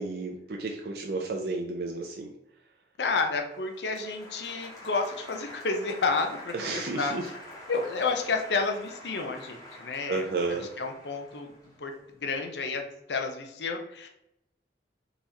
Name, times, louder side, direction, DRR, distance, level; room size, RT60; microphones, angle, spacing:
voice 1, 0.0-2.3 6.5-7.2 10.1-10.7, right 3 dB, 60° right, 1 dB, 0.5 m, -32 dB
voice 2, 3.0-7.1 7.7-10.2 10.5-11.5 11.8-11.9 12.2-14.1, left 4 dB, 75° left, 4 dB, 0.7 m, -30 dB
Applause, 3.4-12.5, left 1 dB, 20° left, 1.2 m, -47 dB
3.9 x 3.0 x 4.0 m, 0.83 s
head